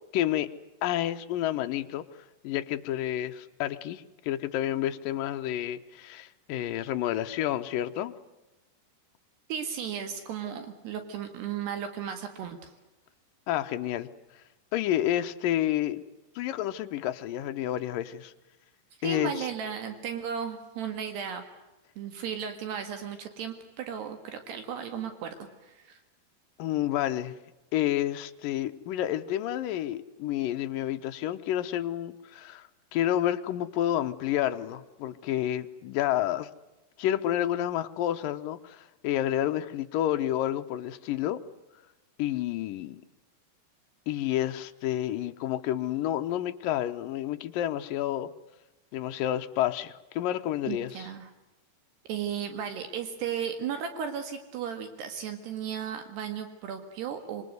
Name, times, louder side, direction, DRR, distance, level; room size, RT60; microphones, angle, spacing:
voice 1, 0.1-0.5 0.8-2.0 2.4-8.1 13.5-14.1 14.7-16.0 16.4-18.3 19.0-19.5 26.6-27.3 27.7-36.5 37.0-41.4 42.2-43.0 44.1-48.3 48.9-51.1, left 12 dB, 70° left, 8 dB, 2.3 m, -29 dB
voice 2, 9.5-12.7 19.0-21.4 22.0-25.3 25.6-26.0 50.7-51.3 52.1-57.4, right 8 dB, 75° right, 7 dB, 3.9 m, -35 dB
26.0 x 24.5 x 8.0 m, 1.0 s
omnidirectional pair, 4.9 m